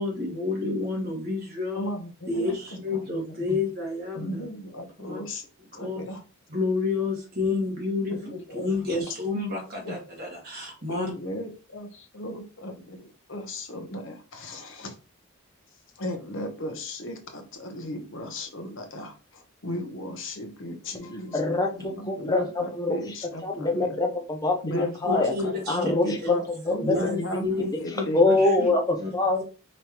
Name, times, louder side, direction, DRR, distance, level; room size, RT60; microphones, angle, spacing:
voice 1, 0.0-1.9 2.3-4.4 5.0-5.2 5.7-6.0 6.5-8.2 8.5-11.1 24.7-26.3 26.8-28.7 29.0-29.1, left 3 dB, 40° right, -1 dB, 1.8 m, -30 dB
voice 2, 1.7-2.5 2.9-3.2 4.1-5.5 5.7-6.2 8.1-9.0 9.8-10.0 10.9-14.9 16.0-24.0 24.6-28.2, left 1 dB, 55° left, 5 dB, 0.8 m, -36 dB
voice 3, 21.3-23.0 23.4-25.3 25.7-26.1 26.7-26.9 28.1-29.4, left 2 dB, 15° left, 2 dB, 0.6 m, -24 dB
5.2 x 3.0 x 2.9 m, 0.35 s
head